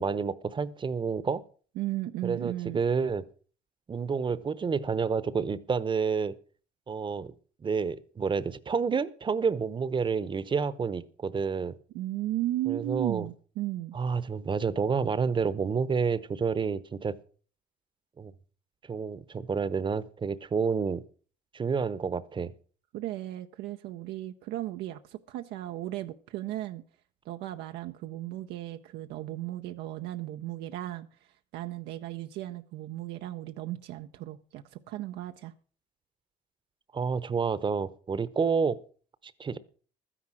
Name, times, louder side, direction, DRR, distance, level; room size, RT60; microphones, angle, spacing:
voice 1, 0.0-1.4 2.2-3.2 3.9-6.4 6.9-7.3 7.6-11.7 12.7-13.3 13.9-17.2 18.2-18.3 18.9-21.0 21.5-22.5 36.9-38.8 39.2-39.6, right 5 dB, 30° right, 17 dB, 0.8 m, -29 dB
voice 2, 1.8-2.8 11.9-14.0 22.9-26.8 27.3-31.1 31.5-35.5, right 15 dB, 85° right, 6 dB, 0.7 m, -35 dB
13.0 x 10.0 x 6.1 m, 0.42 s
cardioid pair, 110°, 17 cm